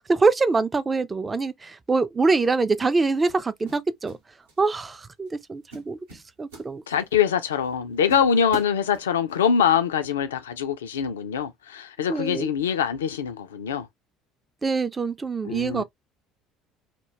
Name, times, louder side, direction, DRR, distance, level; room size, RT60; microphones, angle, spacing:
voice 1, 0.1-4.1 4.6-6.0 6.4-6.8 12.1-12.5 14.6-15.8, right 3 dB, 20° right, 0.3 m, -24 dB
sound 1, 1.9-2.2 3.3-4.2 4.5-4.8 5.3-5.4 5.7-7.2 7.6-7.7 8.1-9.4, right 4 dB, 75° right, 0.8 m, -42 dB
voice 2, 6.9-13.9 15.4-15.8, left 7 dB, 75° left, 0.3 m, -24 dB
2.2 x 2.1 x 3.0 m
figure-of-eight pair, 60°, 0 cm